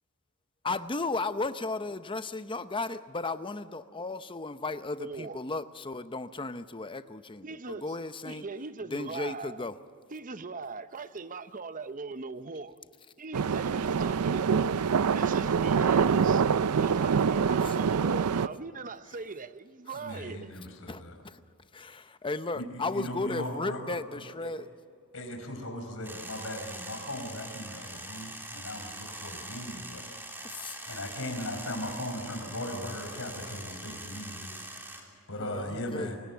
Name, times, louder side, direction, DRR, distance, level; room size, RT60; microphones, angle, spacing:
voice 1, 0.6-8.4 8.8-9.7 17.6-17.8 19.9-20.0 20.9-21.4 21.7-24.6 30.4-31.0 35.4-36.2, left 3 dB, 20° left, 0.7 m, -35 dB
voice 2, 5.0-5.4 7.4-7.8 8.2-9.6 10.1-12.8 13.2-14.8 15.1-16.4 16.8-20.5, right 4 dB, 35° right, 0.8 m, -40 dB
sound 1, 13.3-18.5, right 6 dB, 75° right, 0.5 m, -25 dB
voice 3, 19.9-21.2 22.5-24.0 24.4-24.5 25.1-30.1 30.8-36.2, left 1 dB, 65° left, 4.9 m, -38 dB
sound 2, 26.0-35.0, right 1 dB, 10° right, 3.5 m, -43 dB
28.0 x 17.0 x 7.2 m
head